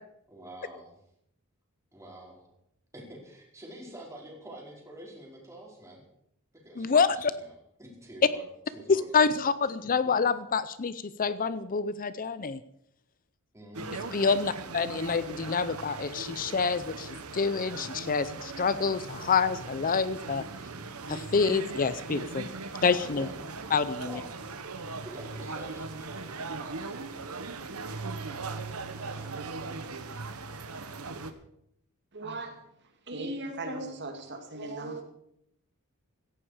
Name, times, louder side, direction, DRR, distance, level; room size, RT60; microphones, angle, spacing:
voice 1, 0.3-0.9 1.9-2.5 2.9-6.0 6.6-7.5 7.8-8.4 8.7-9.6 13.5-14.1 14.6-15.0 20.5-20.9 23.1-23.4 24.0-24.3 25.0-26.7 28.3-29.3, right 1 dB, 15° right, -2 dB, 4.8 m, -47 dB
voice 2, 6.8-7.3 8.9-12.6 14.1-20.4 21.1-22.5 22.8-23.3 23.7-24.2, left 5 dB, 40° left, 14 dB, 0.6 m, -27 dB
sound 1, 13.7-31.3, right 3 dB, 85° right, 1.4 m, -39 dB
voice 3, 32.1-32.6 33.1-35.0, right 2 dB, 55° right, 4 dB, 2.3 m, -37 dB
17.0 x 14.0 x 5.0 m, 0.75 s
head